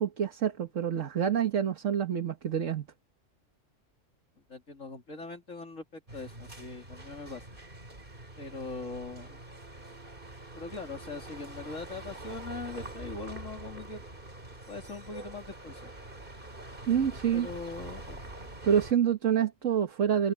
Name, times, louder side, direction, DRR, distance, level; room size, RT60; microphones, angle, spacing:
voice 1, 0.0-2.9 16.9-17.5 18.6-20.3, right 8 dB, 75° right, 1.7 m, -27 dB
voice 2, 4.5-7.5 8.4-9.4 10.5-14.0 14.7-15.9 17.3-18.2, left 3 dB, 80° left, 3.5 m, -41 dB
sound 1, 6.1-18.9, right 2 dB, 40° right, 3.6 m, -45 dB
omnidirectional pair, 1.3 m